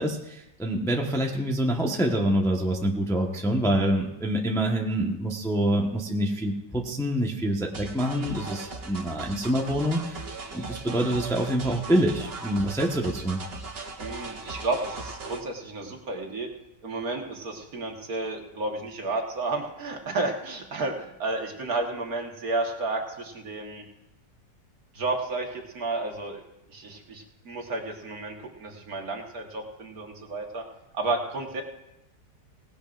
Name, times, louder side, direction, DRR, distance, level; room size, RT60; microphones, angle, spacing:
voice 1, 0.0-10.2 10.5-13.4, right 1 dB, ahead, 1 dB, 0.9 m, -26 dB
sound 1, 7.7-15.4, right 3 dB, 40° right, 1.2 m, -38 dB
voice 2, 14.0-16.5 16.8-23.8 24.9-26.4 26.7-30.6 30.9-31.6, right 2 dB, 55° right, 2 dB, 1.9 m, -32 dB
18.5 x 16.5 x 2.5 m, 0.87 s
omnidirectional pair, 1.9 m